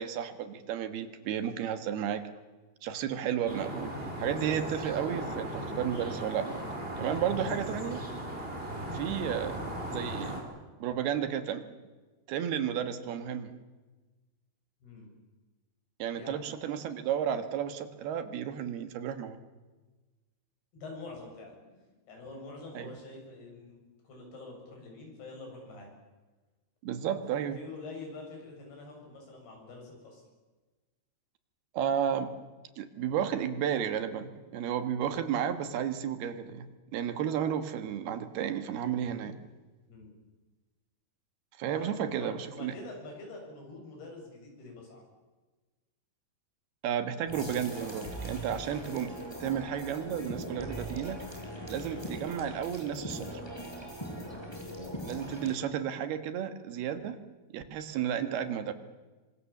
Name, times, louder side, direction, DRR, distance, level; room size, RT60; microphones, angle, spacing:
voice 1, 0.0-2.2 2.8-6.5 7.0-8.0 8.9-10.4 10.8-11.6 12.3-13.6 16.0-19.4 22.8-22.9 26.8-27.6 31.7-32.3 32.8-39.3 41.6-42.7 46.8-49.1 49.4-51.2 51.7-53.4 55.0-57.2 57.5-58.7, right 9 dB, 75° right, 9 dB, 3.5 m, -32 dB
sound 1, 3.5-10.4, right 1 dB, 15° right, 5.1 m, -37 dB
voice 2, 14.8-15.1 16.2-16.4 20.7-21.5 22.1-25.9 27.5-30.2 39.9-40.1 41.7-45.0 54.3-54.5, left 3 dB, 75° left, 1 dB, 9.4 m, -46 dB
sound 2, 47.3-55.5, equal, 5° left, 5.3 m, -40 dB
27.5 x 24.5 x 7.3 m, 1.2 s
omnidirectional pair, 4.6 m